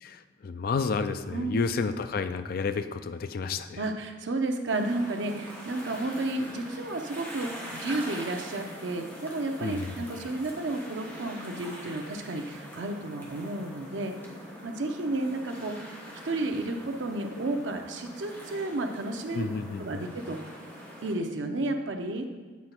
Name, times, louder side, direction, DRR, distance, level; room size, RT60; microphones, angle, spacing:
voice 1, 0.0-3.8 9.6-9.9 19.3-20.1, left 4 dB, 55° left, 10 dB, 0.4 m, -31 dB
voice 2, 1.3-1.6 3.8-14.1 14.6-15.7 16.2-19.4 19.8-20.4 21.0-22.2, right 2 dB, 85° right, 5 dB, 0.7 m, -32 dB
sound 1, 4.7-21.1, equal, 10° left, 1.2 m, -43 dB
8.3 x 3.9 x 4.4 m, 1.4 s
head